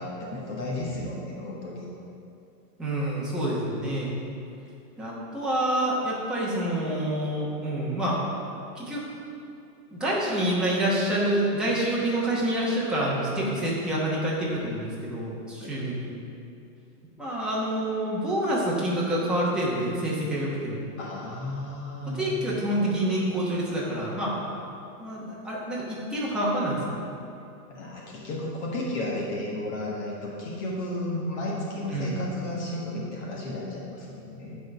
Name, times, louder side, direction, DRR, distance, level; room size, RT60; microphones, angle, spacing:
voice 1, 0.0-1.9 15.6-15.8 21.0-23.1 27.7-34.6, left 1 dB, 45° left, -3 dB, 1.5 m, -33 dB
voice 2, 2.8-4.2 5.0-8.2 8.7-9.0 9.9-16.1 17.2-20.8 22.1-24.3 25.0-27.0 31.9-32.2, right 1 dB, ahead, -8 dB, 1.0 m, -27 dB
9.1 x 5.2 x 6.0 m, 2.6 s
hypercardioid pair, 160°, 48 cm